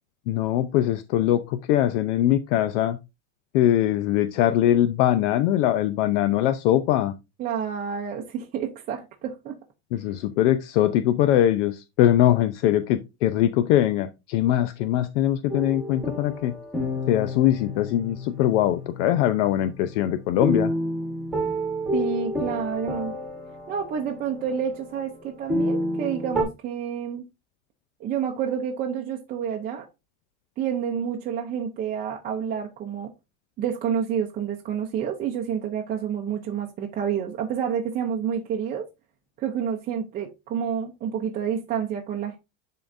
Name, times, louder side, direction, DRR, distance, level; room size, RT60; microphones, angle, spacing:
voice 1, 0.3-3.0 3.5-7.1 9.9-16.5 17.1-20.7, left 12 dB, 80° left, 11 dB, 0.6 m, -22 dB
voice 2, 7.4-9.5 21.9-23.1 23.7-27.2 28.0-29.9 30.6-33.1 33.6-38.9 39.4-42.4, right 8 dB, 25° right, 0 dB, 0.6 m, -29 dB
sound 1, 15.5-26.4, equal, ahead, 1.3 m, -30 dB
10.5 x 3.8 x 2.6 m, 0.25 s
cardioid pair, 175°, 36 cm